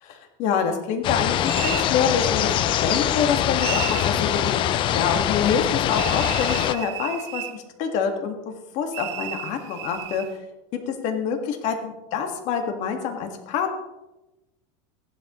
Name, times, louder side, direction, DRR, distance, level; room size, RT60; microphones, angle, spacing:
voice 1, 0.4-2.5 2.8-10.3 10.9-13.7, left 6 dB, 50° left, 4 dB, 1.8 m, -26 dB
sound 1, 1.0-6.7, left 11 dB, 30° left, 0.5 m, -23 dB
sound 2, 1.5-1.9 3.6-4.2 5.9-7.6 8.9-10.3, right 14 dB, 65° right, 0.8 m, -33 dB
15.5 x 11.5 x 3.1 m, 0.99 s
supercardioid pair, 155°, 16 cm